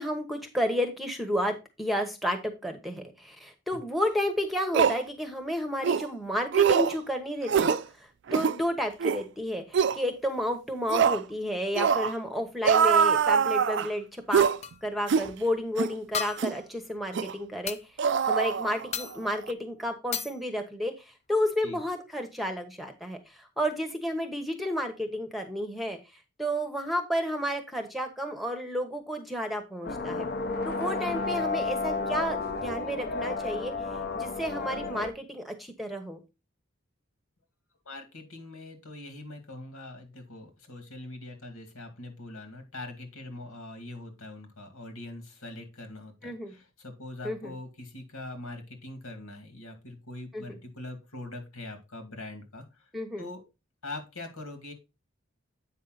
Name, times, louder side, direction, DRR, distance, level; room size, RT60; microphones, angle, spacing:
voice 1, 0.0-14.5 14.8-17.8 18.3-20.9 21.3-26.0 26.4-30.3 30.6-33.7 34.1-36.2 46.2-46.5 47.2-47.5 50.3-50.6 52.9-53.2, equal, ahead, 6 dB, 1.0 m, -31 dB
sound 1, 4.0-4.1 4.7-5.0 5.8-6.1 6.5-7.0 7.5-7.8 8.3-8.6 9.0-9.2 9.7-10.0 10.9-11.2 11.8-12.1 12.6-13.9 14.3-14.6 15.1-15.3 15.8-15.9 16.4-16.6 17.2-17.3 18.0-19.1 19.3-19.5, right 7 dB, 55° right, 0.4 m, -23 dB
sound 2, 14.6-14.9 16.1-16.7 17.7-17.8 18.9-19.3 20.1-20.4 21.8-21.9 22.2-22.3, left 7 dB, 30° left, 0.4 m, -35 dB
sound 3, 29.8-35.1, left 3 dB, 50° left, 1.0 m, -32 dB
voice 2, 37.9-52.9 53.2-53.4 53.8-54.7, left 2 dB, 90° left, 6 dB, 2.3 m, -42 dB
8.4 x 5.6 x 3.9 m, 0.26 s
head